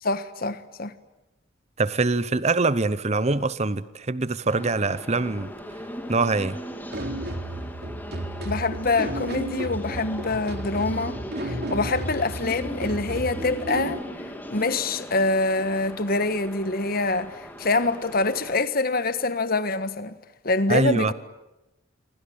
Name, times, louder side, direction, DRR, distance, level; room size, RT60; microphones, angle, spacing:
voice 1, 0.0-0.9 8.4-20.2 20.4-21.1, left 3 dB, 50° left, 1.5 m, -25 dB
voice 2, 1.8-5.5 6.1-6.6 20.7-21.1, right 3 dB, 35° right, 0.9 m, -24 dB
sound 1, 4.5-18.6, equal, 10° left, 2.9 m, -39 dB
sound 2, 6.9-14.0, right 1 dB, 55° right, 3.6 m, -33 dB
27.5 x 25.0 x 8.7 m
head